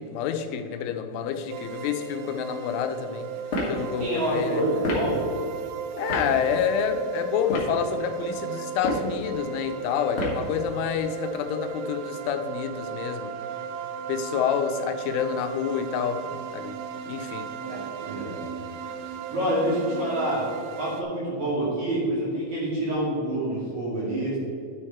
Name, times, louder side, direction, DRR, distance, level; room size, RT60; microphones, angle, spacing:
voice 1, 0.0-3.3 3.7-4.6 6.0-13.3 14.1-16.8 17.1-17.5, left 8 dB, 90° left, 7 dB, 3.1 m, -28 dB
sound 1, 1.5-21.0, right 8 dB, 85° right, 3.0 m, -36 dB
sound 2, 3.5-3.8 4.8-5.1 6.1-6.3 7.4-7.8 8.7-9.1 10.1-10.5, left 1 dB, 55° left, 1.4 m, -28 dB
voice 2, 4.0-5.2 17.6-18.3 19.0-20.4 20.8-24.4, right 1 dB, 45° right, -7 dB, 3.1 m, -27 dB
11.0 x 6.5 x 4.3 m, 2.6 s
omnidirectional pair, 5.5 m